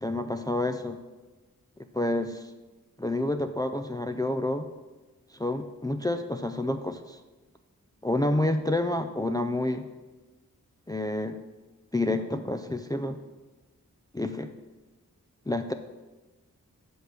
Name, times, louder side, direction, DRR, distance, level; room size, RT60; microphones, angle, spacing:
voice 1, 0.0-1.0 1.9-2.5 3.0-4.7 5.3-7.2 8.0-9.8 10.9-11.4 11.9-13.2 14.1-14.5 15.5-15.7, left 1 dB, 10° left, 6 dB, 0.4 m, -29 dB
6.1 x 5.6 x 5.8 m, 1.2 s
cardioid pair, 45°, 35 cm